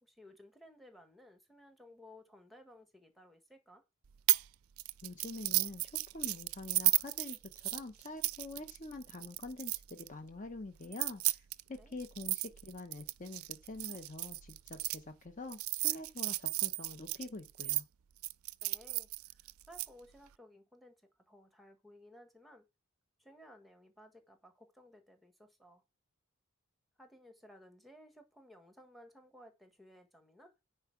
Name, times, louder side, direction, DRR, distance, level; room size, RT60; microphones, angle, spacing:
voice 1, 0.0-3.8 11.8-12.0 18.6-22.7 23.2-25.8 27.0-30.5, left 1 dB, ahead, 1.5 m, -58 dB
sound 1, 4.3-4.5 4.8-10.1 10.8-15.0 15.5-17.8 18.2-19.9, right 21 dB, 75° right, 0.4 m, -34 dB
voice 2, 5.0-17.8, left 2 dB, 35° left, 0.9 m, -46 dB
9.6 x 4.6 x 5.9 m
head